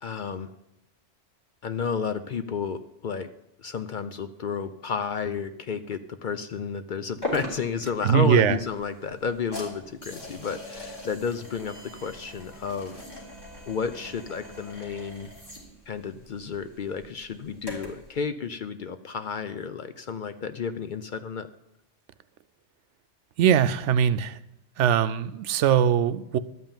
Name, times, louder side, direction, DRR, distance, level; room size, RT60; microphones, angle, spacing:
voice 1, 0.0-0.5 1.6-3.3 3.6-13.0 13.7-15.3 15.9-21.5, left 6 dB, 55° left, 10 dB, 0.6 m, -32 dB
sound 1, 7.2-18.1, left 1 dB, 20° left, 3.2 m, -41 dB
voice 2, 8.0-8.6 23.4-24.4 24.8-26.4, right 9 dB, 85° right, 13 dB, 0.9 m, -21 dB
12.5 x 5.6 x 8.8 m, 0.84 s
omnidirectional pair, 1.2 m